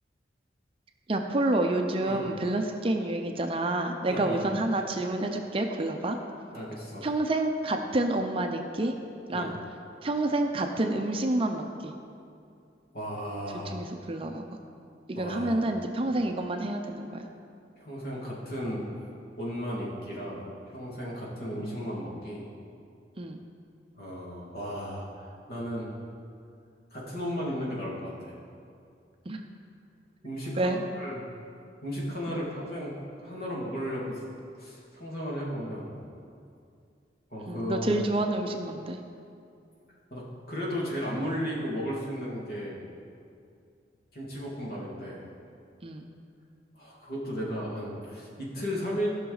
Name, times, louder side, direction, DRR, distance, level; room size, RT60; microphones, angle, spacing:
voice 1, 1.1-6.2 7.0-9.0 9.3-9.6 10.0-11.9 13.6-14.4 15.1-17.3 21.5-21.8 23.2-23.4 29.2-29.5 30.6-30.8 32.3-32.4 37.5-39.0 45.8-46.1, right 2 dB, 30° right, 4 dB, 0.5 m, -29 dB
voice 2, 4.1-4.4 6.5-7.1 9.3-9.5 12.9-13.7 15.2-15.6 17.8-18.9 19.4-22.4 24.0-25.9 26.9-28.4 30.2-30.7 31.0-31.2 31.8-32.9 33.2-34.2 34.6-35.9 37.3-37.9 40.1-42.8 44.1-45.3 46.8-49.1, equal, 55° left, -5 dB, 2.1 m, -35 dB
15.0 x 5.9 x 4.0 m, 2.4 s
head